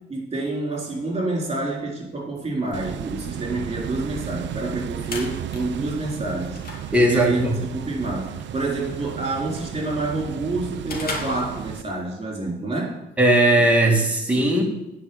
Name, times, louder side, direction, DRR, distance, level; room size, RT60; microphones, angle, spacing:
voice 1, 0.0-6.6 6.8-12.9, right 2 dB, 25° right, -3 dB, 3.8 m, -28 dB
sound 1, 2.7-11.8, right 10 dB, 70° right, 0.5 m, -34 dB
sound 2, 4.7-12.1, left 2 dB, 50° left, 2.2 m, -39 dB
voice 2, 6.9-7.5 13.2-14.6, right 1 dB, 5° right, -1 dB, 2.4 m, -18 dB
9.7 x 4.9 x 6.9 m, 0.92 s
cardioid pair, 90°, 20 cm